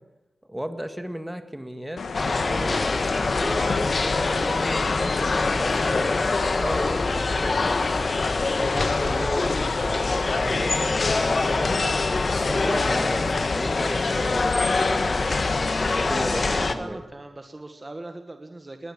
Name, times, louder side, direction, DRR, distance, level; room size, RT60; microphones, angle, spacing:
voice 1, 0.5-6.1 6.4-7.8 8.5-11.8 12.2-15.0 15.8-17.0, equal, 5° right, 8 dB, 1.9 m, -35 dB
sound 1, 2.0-13.3, left 4 dB, 85° left, 1.7 m, -37 dB
sound 2, 2.1-16.7, left 3 dB, 50° left, 1.5 m, -24 dB
voice 2, 16.3-18.9, right 2 dB, 25° right, 6 dB, 1.5 m, -39 dB
21.0 x 19.0 x 7.4 m, 1.1 s
wide cardioid pair, 100°, 0 cm